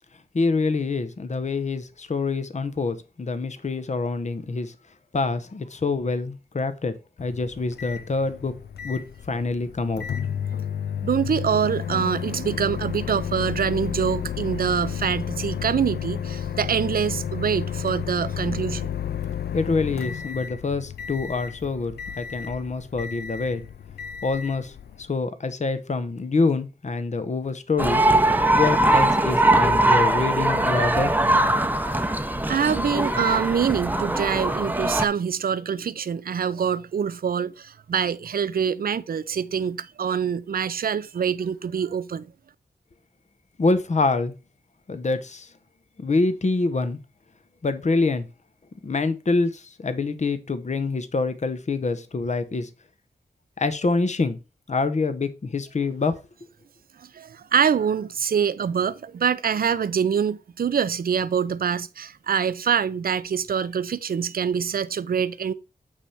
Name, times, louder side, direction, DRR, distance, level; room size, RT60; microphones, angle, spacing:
voice 1, 0.3-4.7 5.1-6.9 7.2-8.5 8.8-9.0 9.3-10.0 19.5-23.6 24.2-28.0 28.5-31.1 43.6-44.3 44.9-45.5 46.0-47.0 47.6-48.3 48.8-52.7 53.6-54.4 54.7-56.1, left 3 dB, 45° left, 0.9 m, -26 dB
Microwave oven, 7.2-25.1, left 8 dB, 75° left, 0.5 m, -32 dB
voice 2, 11.0-18.9 32.5-42.3 57.0-65.5, right 7 dB, 60° right, 0.5 m, -25 dB
sound 1, 27.8-35.0, right 1 dB, 10° right, 0.8 m, -21 dB
8.6 x 3.4 x 5.5 m
cardioid pair, 60°, 17 cm